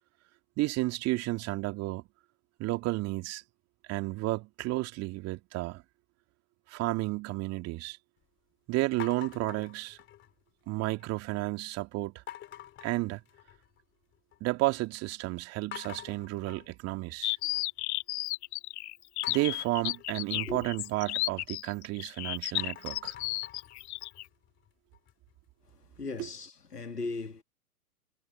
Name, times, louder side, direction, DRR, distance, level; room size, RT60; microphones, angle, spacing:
voice 1, 0.6-2.0 2.6-3.4 3.9-5.8 6.7-8.0 8.7-10.0 10.7-12.2 12.8-13.2 14.4-17.4 19.3-23.1, right 20 dB, 35° right, 2.5 m, -32 dB
sound 1, 9.0-10.5 10.9-11.4 12.3-13.8 14.1-14.7 15.1-15.2 15.7-17.8 19.2-22.0 22.4-25.3, left 12 dB, 25° left, 2.8 m, -48 dB
sound 2, 17.2-24.2, left 19 dB, 45° left, 1.3 m, -33 dB
voice 2, 20.3-20.7 25.8-27.4, left 3 dB, 90° left, 2.5 m, -38 dB
figure-of-eight pair, 110°, 46 cm